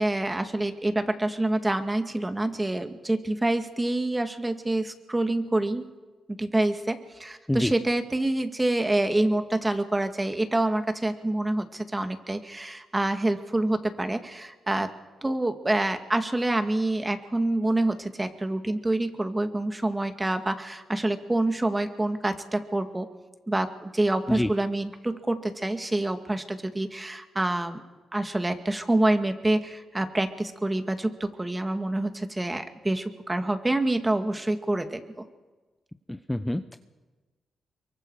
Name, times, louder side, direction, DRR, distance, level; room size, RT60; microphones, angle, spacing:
voice 1, 0.0-5.9 6.4-14.9 15.2-23.1 23.5-27.8 28.1-35.0, right 1 dB, 20° right, 7 dB, 2.3 m, -27 dB
voice 2, 36.1-36.8, left 1 dB, 10° left, 10 dB, 0.9 m, -27 dB
24.0 x 23.5 x 5.0 m, 1.3 s
supercardioid pair, 60°, 0 cm